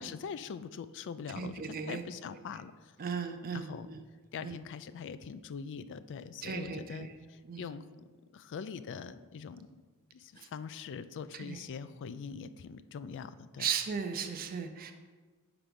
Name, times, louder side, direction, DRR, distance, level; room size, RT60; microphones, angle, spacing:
voice 1, 0.0-2.9 3.5-3.9 4.3-7.8 8.3-9.7 10.1-13.7, left 6 dB, 55° left, 14 dB, 0.3 m, -43 dB
voice 2, 1.3-2.0 2.3-2.4 3.0-4.0 4.4-4.5 6.4-7.1 7.4-7.7 10.4-10.5 11.3-11.6 13.6-14.9, right 6 dB, 40° right, 6 dB, 0.5 m, -36 dB
5.9 x 4.8 x 5.2 m, 1.4 s
head